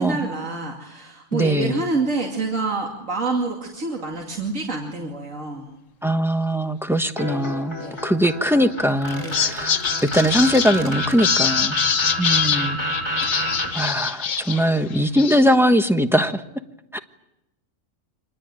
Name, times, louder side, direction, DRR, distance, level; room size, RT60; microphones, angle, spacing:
voice 1, 0.0-5.8 7.8-8.0 9.2-9.5, right 3 dB, 80° right, 0 dB, 2.9 m, -27 dB
voice 2, 1.3-1.8 6.0-11.8 12.2-12.8 13.2-16.4 16.9-17.0, equal, ahead, 6 dB, 1.1 m, -21 dB
sound 1, 7.2-13.7, equal, 20° left, 7.1 m, -29 dB
sound 2, 8.5-8.7 9.1-14.7 14.9-15.6, left 7 dB, 90° left, 1.5 m, -24 dB
sound 3, 8.9-11.2, left 1 dB, 35° left, 6.4 m, -36 dB
26.0 x 20.5 x 9.0 m, 0.90 s
omnidirectional pair, 1.3 m